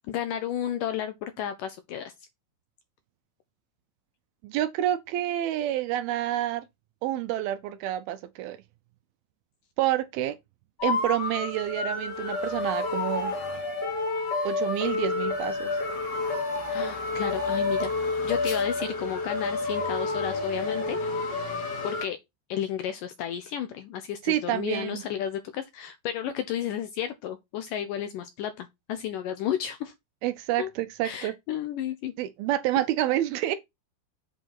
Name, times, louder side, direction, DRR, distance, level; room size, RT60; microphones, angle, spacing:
voice 1, 0.1-2.1 16.7-17.9 18.2-21.0 21.8-22.2 22.5-29.9 30.6-30.7 31.0-32.1, left 10 dB, 75° left, 2.0 m, -32 dB
voice 2, 4.4-6.6 7.0-8.6 9.8-10.4 10.8-13.3 14.4-15.8 24.3-25.0 30.2-31.3 32.2-33.6, right 13 dB, 80° right, 2.4 m, -28 dB
sound 1, 10.8-22.0, left 3 dB, 40° left, 3.2 m, -29 dB
7.9 x 4.6 x 5.7 m
omnidirectional pair, 4.7 m